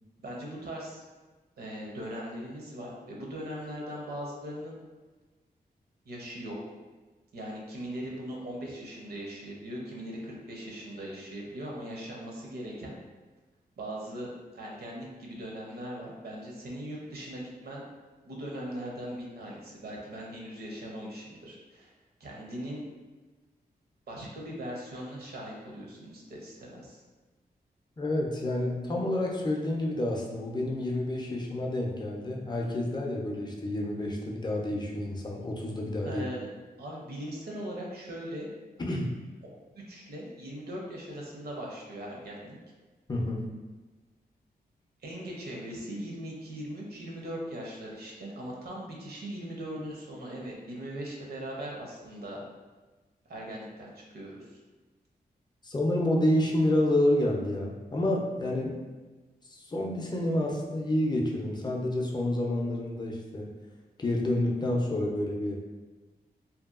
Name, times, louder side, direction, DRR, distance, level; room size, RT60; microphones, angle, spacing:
voice 1, 0.2-1.0 1.6-4.8 6.1-6.7 7.3-12.9 13.8-17.8 18.2-21.9 22.2-22.8 24.1-27.0 36.0-36.5 36.8-38.5 39.4-42.6 45.0-52.5 53.3-54.6, equal, 75° right, -3 dB, 0.7 m, -40 dB
voice 2, 28.0-36.3 38.8-39.1 43.1-43.4 55.6-58.8 59.5-63.5 64.0-65.6, left 1 dB, 25° left, -1 dB, 0.5 m, -29 dB
2.7 x 2.2 x 2.4 m, 1.2 s
cardioid pair, 65°, 17 cm